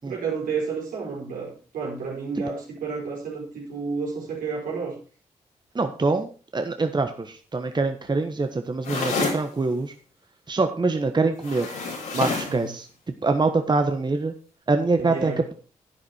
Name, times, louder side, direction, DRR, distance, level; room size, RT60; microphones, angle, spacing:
voice 1, 0.0-4.9 12.5-12.7 15.0-15.4, right 5 dB, 80° right, -1 dB, 4.9 m, -31 dB
voice 2, 5.7-9.9 10.5-11.7 12.1-12.9 13.2-14.3 14.7-15.5, right 3 dB, 30° right, 7 dB, 1.3 m, -24 dB
sound 1, 8.8-9.4 11.4-12.6, left 4 dB, 85° left, 5.1 m, -28 dB
11.0 x 9.9 x 4.4 m, 0.37 s
supercardioid pair, 45°, 14 cm